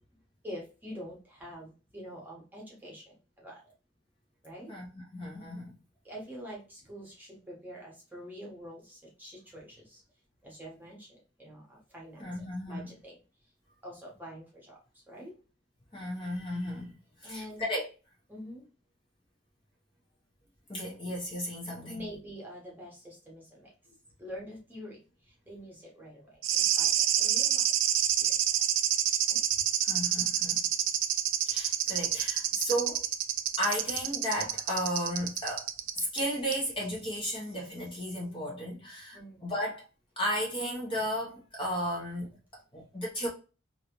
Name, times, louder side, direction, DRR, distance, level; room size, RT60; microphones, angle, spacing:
voice 1, 0.4-3.7 4.4-4.7 6.0-10.0 10.4-13.5 13.8-15.4 17.2-17.6 18.3-18.6 21.8-23.7 24.2-27.7 28.0-28.5 29.3-29.4 39.1-39.5, equal, 10° right, 1.1 m, -46 dB
voice 2, 5.1-5.7 12.2-12.9 15.9-17.9 20.7-22.1 29.8-30.7 31.5-33.0 33.6-35.7 36.0-39.8 40.2-43.3, equal, 25° left, 0.8 m, -34 dB
sound 1, 26.4-36.2 36.5-36.6, right 11 dB, 75° right, 0.4 m, -28 dB
3.1 x 2.6 x 2.9 m
head